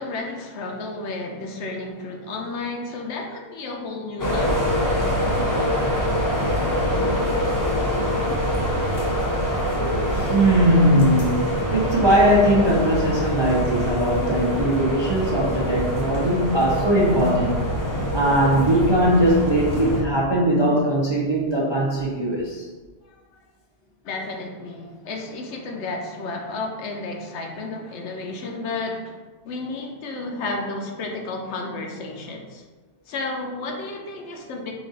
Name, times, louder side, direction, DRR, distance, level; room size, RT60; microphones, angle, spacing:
voice 1, 0.0-5.4 23.1-23.2 24.0-29.2 29.4-32.6 33.1-34.7, left 3 dB, 80° left, 2 dB, 0.9 m, -32 dB
sound 1, 4.2-20.0, equal, 30° left, 0.4 m, -24 dB
voice 2, 10.1-17.5 17.8-22.7, right 1 dB, 45° right, -4 dB, 0.3 m, -20 dB
3.9 x 2.5 x 3.8 m, 1.3 s
omnidirectional pair, 1.2 m